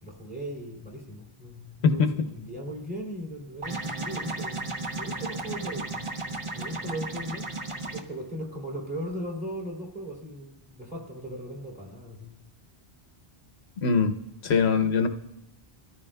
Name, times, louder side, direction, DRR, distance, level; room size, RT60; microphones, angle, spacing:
voice 1, 0.0-4.6 5.0-6.0 6.5-7.5 7.9-12.3, equal, 10° right, -1 dB, 2.7 m, -38 dB
sound 1, 3.6-8.0, right 2 dB, 35° right, 0.8 m, -34 dB
voice 2, 13.8-14.1 14.4-15.1, left 5 dB, 90° left, 7 dB, 1.0 m, -22 dB
25.0 x 13.5 x 2.2 m, 0.90 s
omnidirectional pair, 1.1 m